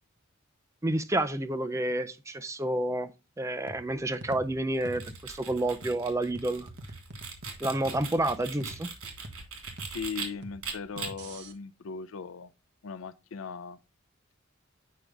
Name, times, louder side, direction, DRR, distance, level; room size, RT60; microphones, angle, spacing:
voice 1, 0.8-3.1 3.4-6.7 7.6-8.9, right 1 dB, 15° right, 0.4 m, -29 dB
sound 1, 3.7-11.5, right 1 dB, 55° right, 1.1 m, -46 dB
sound 2, 4.7-10.3 10.6-11.1, right 6 dB, 90° right, 3.1 m, -40 dB
voice 2, 9.9-12.5 12.8-13.8, left 5 dB, 80° left, 0.5 m, -38 dB
8.5 x 5.1 x 3.4 m
head